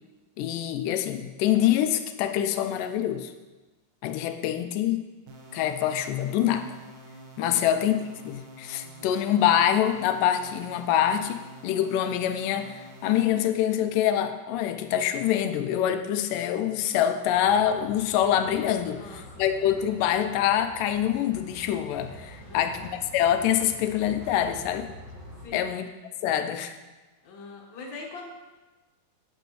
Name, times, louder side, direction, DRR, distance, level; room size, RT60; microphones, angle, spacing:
voice 1, 0.4-3.3 4.0-5.0 5.5-6.8 7.4-8.0 8.3-24.9 25.5-25.9 26.2-26.8, left 10 dB, 80° left, 8 dB, 2.0 m, -25 dB
sound 1, 5.3-13.3, right 1 dB, 70° right, 1.8 m, -47 dB
sound 2, 17.4-25.5, equal, 45° right, 3.0 m, -46 dB
voice 2, 18.9-19.5 22.5-22.9 25.4-25.8 27.2-28.3, left 3 dB, 60° left, -1 dB, 2.2 m, -43 dB
10.5 x 9.0 x 3.0 m, 1.2 s
omnidirectional pair, 4.2 m